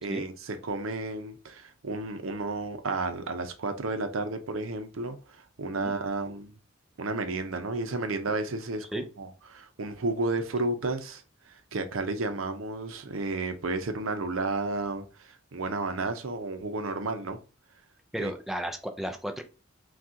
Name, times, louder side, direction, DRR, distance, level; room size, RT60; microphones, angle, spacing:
voice 1, 0.0-6.6 7.0-17.4 18.2-18.3, right 3 dB, 80° right, 0.7 m, -32 dB
voice 2, 18.1-19.4, equal, ahead, 0.4 m, -33 dB
6.0 x 2.4 x 2.7 m
head